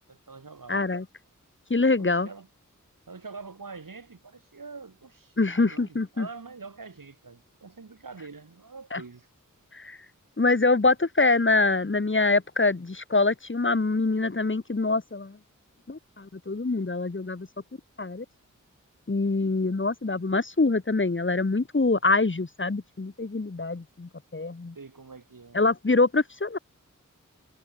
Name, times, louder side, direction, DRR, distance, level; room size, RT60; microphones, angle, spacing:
voice 1, 0.1-0.8 2.0-2.5 3.1-9.3 14.2-14.3 24.8-25.6, right 4 dB, 85° right, 6.8 m, -45 dB
voice 2, 0.7-1.0 1.7-2.3 5.4-6.3 8.9-9.0 9.7-10.0 10.4-15.4 15.9-17.5 18.0-18.2 19.1-24.7 25.5-26.6, left 3 dB, 35° left, 1.5 m, -25 dB
wide cardioid pair, 45°, 32 cm